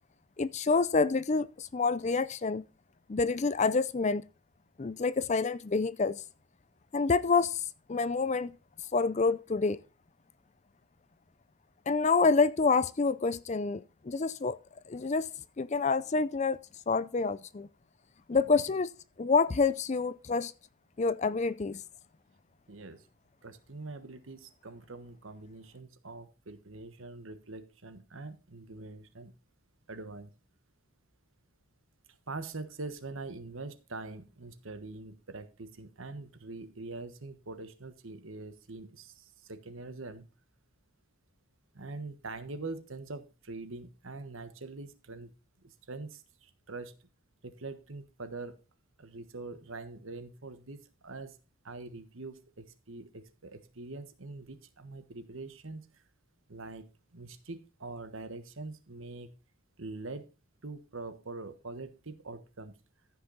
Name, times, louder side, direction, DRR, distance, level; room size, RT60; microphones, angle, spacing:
voice 1, 0.4-2.6 3.1-4.2 4.8-6.2 6.9-7.6 7.9-8.5 8.9-9.8 11.9-14.6 14.9-15.3 15.6-16.6 16.9-17.7 18.3-18.9 19.2-20.5 21.0-21.8, left 4 dB, 35° left, 0.4 m, -27 dB
voice 2, 22.7-23.0 23.4-29.3 29.9-30.3 32.3-40.2 41.7-45.3 45.6-47.0 47.4-48.6 49.0-51.4 51.6-55.8 56.5-59.3 59.8-60.3 60.6-62.7, right 3 dB, 70° right, 1.3 m, -44 dB
14.5 x 5.9 x 3.9 m
head